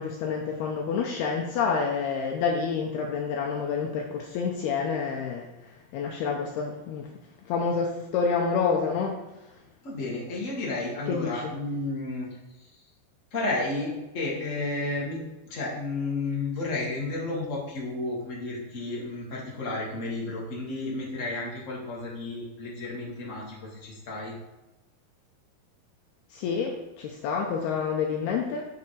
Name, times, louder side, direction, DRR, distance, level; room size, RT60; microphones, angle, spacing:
voice 1, 0.0-5.5 5.9-7.1 7.5-9.2 11.1-11.5 26.3-28.7, left 5 dB, 80° left, 1 dB, 2.3 m, -28 dB
voice 2, 9.8-12.3 13.3-15.2 15.4-24.3, left 2 dB, 45° left, -4 dB, 1.0 m, -32 dB
7.3 x 7.1 x 4.9 m, 1.0 s
omnidirectional pair, 5.4 m